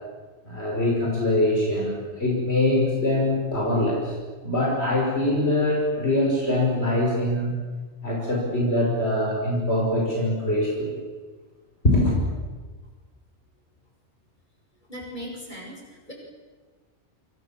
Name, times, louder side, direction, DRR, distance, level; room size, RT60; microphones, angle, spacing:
voice 1, 0.4-4.1 4.4-7.5 8.0-11.0 11.8-12.2, left 1 dB, 65° left, -2 dB, 6.0 m, -23 dB
voice 2, 14.9-16.1, equal, 40° left, 0 dB, 8.2 m, -38 dB
28.5 x 27.0 x 7.6 m, 1.4 s
omnidirectional pair, 1.2 m